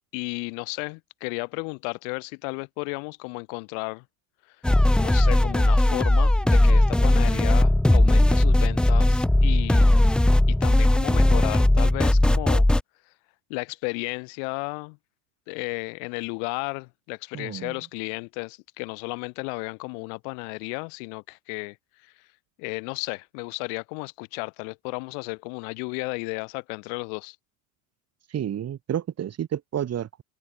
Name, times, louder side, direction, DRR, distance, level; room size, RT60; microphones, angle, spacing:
voice 1, 0.1-4.0 5.0-10.0 10.5-12.7 13.5-15.0 15.5-21.8 22.0-22.1 22.6-27.4, left 40 dB or more, 70° left, 5.4 m, -33 dB
sound 1, 4.6-12.8, left 1 dB, 5° left, 0.3 m, -18 dB
voice 2, 17.3-17.7 28.3-30.2, right 10 dB, 40° right, 3.8 m, -30 dB
hypercardioid pair, 90°, 40 cm